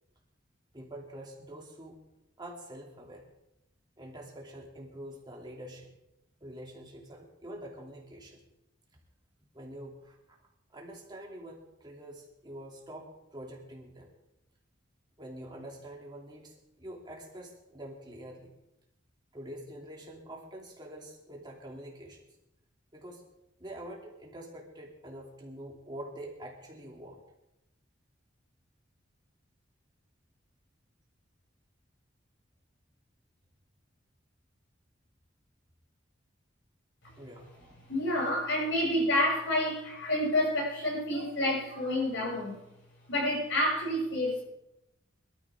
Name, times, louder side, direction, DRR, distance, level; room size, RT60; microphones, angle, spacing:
voice 1, 0.7-2.0 2.4-3.2 4.0-5.9 6.4-8.4 9.5-10.2 10.7-14.1 15.2-18.5 19.3-22.2 22.9-23.2 23.6-27.2 37.2-37.9, right 1 dB, 25° right, -1 dB, 2.7 m, -46 dB
voice 2, 37.9-42.6 43.1-44.4, left 1 dB, 70° left, -3 dB, 7.5 m, -29 dB
23.5 x 13.0 x 3.6 m, 0.87 s
head